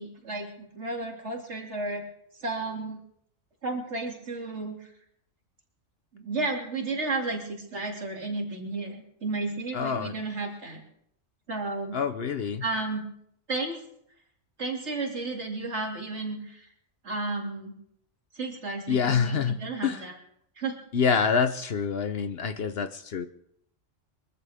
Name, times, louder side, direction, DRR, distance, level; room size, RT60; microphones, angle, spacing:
voice 1, 0.0-2.0 2.3-3.0 3.6-4.9 6.1-10.8 11.5-12.0 12.6-13.0 13.5-13.8 14.6-16.7 17.0-17.8 18.3-20.1 20.6-20.8 21.1-21.2, right 3 dB, 60° right, 0 dB, 3.0 m, -33 dB
voice 2, 9.7-10.1 11.9-12.6 18.9-19.6 19.8-20.0 20.9-23.3, left 6 dB, 55° left, 11 dB, 0.9 m, -26 dB
23.5 x 14.0 x 3.6 m, 0.70 s
omnidirectional pair, 1.3 m